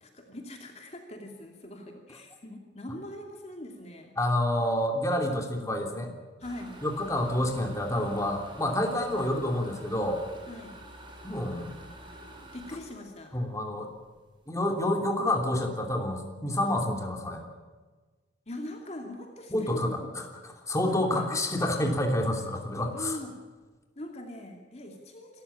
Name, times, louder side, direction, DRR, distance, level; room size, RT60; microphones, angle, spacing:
voice 1, 0.0-4.2 6.4-6.8 10.5-10.8 12.5-13.4 18.5-20.2 20.9-21.4 22.9-23.4 24.0-25.4, left 1 dB, 40° left, 2 dB, 2.6 m, -42 dB
voice 2, 4.2-6.1 6.8-10.2 11.2-11.7 13.3-13.9 14.5-17.4 19.5-20.3 20.7-23.2, left 1 dB, 20° left, 2 dB, 3.1 m, -28 dB
sound 1, 6.4-14.2 14.6-14.7 15.1-15.2 15.4-15.8, right 1 dB, 30° right, 5.2 m, -48 dB
27.0 x 14.5 x 8.7 m, 1.3 s
head